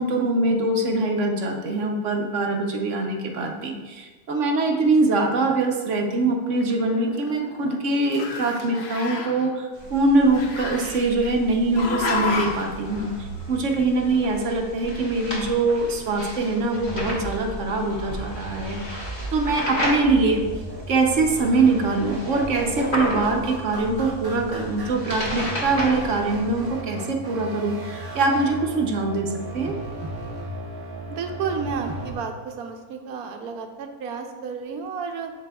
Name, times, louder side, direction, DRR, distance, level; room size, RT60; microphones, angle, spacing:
voice 1, 0.0-19.0 19.3-20.4 20.9-29.8, right 3 dB, 60° right, 2 dB, 1.0 m, -23 dB
Growling, 6.5-7.8 8.0-9.5 10.3-11.3 11.8-12.7, left 3 dB, 55° left, 0.7 m, -30 dB
sound 1, 9.7-26.7, left 1 dB, 35° left, 1.4 m, -34 dB
sound 2, 16.7-32.1, right 1 dB, 20° right, 0.9 m, -36 dB
voice 2, 31.1-35.3, right 6 dB, 80° right, 5 dB, 1.1 m, -31 dB
7.6 x 7.4 x 2.3 m, 1.3 s
omnidirectional pair, 1.6 m